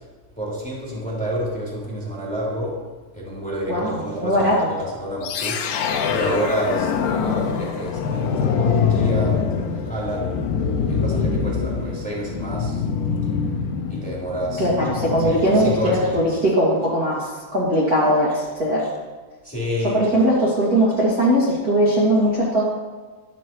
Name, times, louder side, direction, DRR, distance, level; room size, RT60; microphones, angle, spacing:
voice 1, 0.4-2.8 3.1-5.7 6.1-10.3 10.9-12.8 13.9-14.7 15.2-16.4 19.4-20.0, equal, ahead, -6 dB, 2.4 m, -29 dB
voice 2, 3.7-4.7 14.6-18.9 19.8-22.6, equal, 35° right, -7 dB, 1.6 m, -20 dB
sound 1, 5.2-16.3, left 6 dB, 80° left, 1.9 m, -24 dB
15.0 x 12.5 x 3.1 m, 1.4 s
omnidirectional pair, 5.2 m